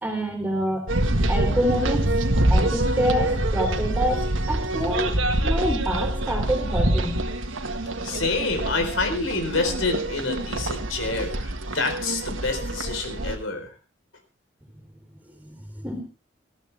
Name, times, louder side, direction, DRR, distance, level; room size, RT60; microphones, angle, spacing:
voice 1, 0.0-0.9 1.3-2.1 2.5-7.2 15.4-16.0, equal, 10° right, 4 dB, 3.9 m, -27 dB
sound 1, 0.9-13.4, right 1 dB, 80° right, 1.7 m, -25 dB
voice 2, 8.0-13.7, left 3 dB, 85° left, 6 dB, 4.4 m, -27 dB
20.0 x 14.5 x 3.5 m, 0.32 s
head